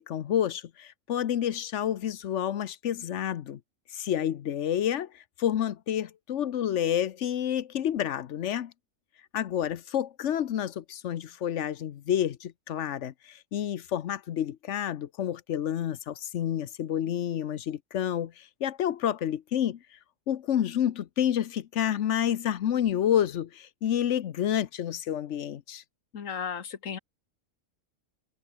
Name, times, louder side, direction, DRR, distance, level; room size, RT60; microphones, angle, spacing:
voice 1, 0.0-3.6 3.9-8.7 9.3-19.8 20.3-25.8, left 10 dB, 70° left, 1.1 m, -29 dB
voice 2, 26.1-27.0, left 7 dB, 90° left, 1.7 m, -35 dB
omnidirectional pair, 1.3 m